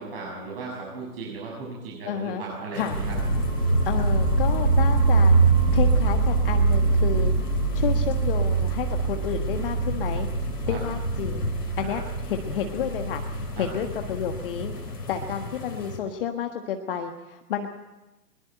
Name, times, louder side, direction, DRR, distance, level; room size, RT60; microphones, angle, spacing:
voice 1, 0.0-3.2 10.6-10.8 11.8-11.9 13.6-13.7, right 4 dB, 35° right, -3 dB, 6.8 m, -36 dB
voice 2, 2.0-2.4 2.7-3.0 3.8-5.4 5.7-7.3 7.7-11.5 11.8-14.7 15.1-17.7, left 8 dB, 35° left, 5 dB, 1.5 m, -31 dB
sound 1, 2.7-16.0, left 3 dB, 75° left, 3.8 m, -36 dB
sound 2, 2.9-14.9, right 3 dB, 85° right, 6.7 m, -23 dB
22.5 x 22.0 x 7.8 m, 1.0 s
figure-of-eight pair, 125°, 47 cm